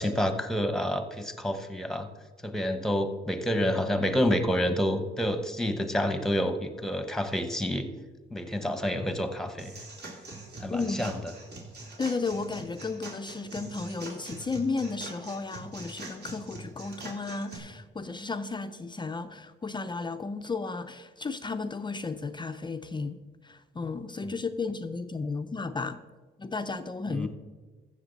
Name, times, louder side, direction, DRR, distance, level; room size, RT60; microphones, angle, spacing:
voice 1, 0.0-2.1 2.4-7.9 8.3-9.7 10.6-11.1 24.2-24.3 27.1-27.3, equal, ahead, 1.1 m, -28 dB
sound 1, 9.6-17.6, right 2 dB, 55° right, 3.0 m, -43 dB
voice 2, 10.7-11.2 12.0-26.0 26.4-27.3, left 4 dB, 25° left, 0.5 m, -34 dB
14.5 x 6.7 x 4.0 m
cardioid pair, 90°, 20 cm